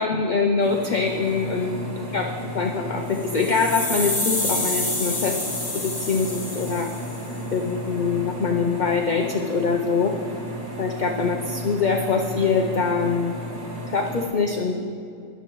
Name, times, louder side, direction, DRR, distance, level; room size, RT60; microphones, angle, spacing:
voice 1, 0.0-1.8 2.1-2.3 2.5-5.4 5.7-6.9 7.5-10.1 10.8-13.3 13.9-14.8, left 5 dB, 60° left, 2 dB, 0.5 m, -23 dB
sound 1, 0.6-14.3, equal, 75° right, 3.1 m, -34 dB
sound 2, 3.1-7.3, left 2 dB, 15° left, 1.2 m, -28 dB
15.0 x 10.5 x 3.0 m, 2.6 s
omnidirectional pair, 1.5 m